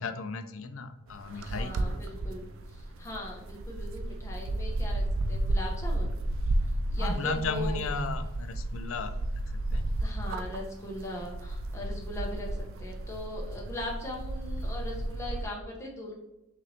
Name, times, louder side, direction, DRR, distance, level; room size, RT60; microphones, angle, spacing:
voice 1, 0.0-1.7 7.0-9.1 9.7-9.9, left 4 dB, 65° left, 8 dB, 0.4 m, -34 dB
sound 1, 1.1-15.4, right 1 dB, 65° right, 0.4 m, -33 dB
voice 2, 1.3-6.1 6.9-7.8 10.0-16.1, left 1 dB, 15° left, -2 dB, 0.9 m, -40 dB
5.8 x 3.1 x 2.8 m, 0.93 s
head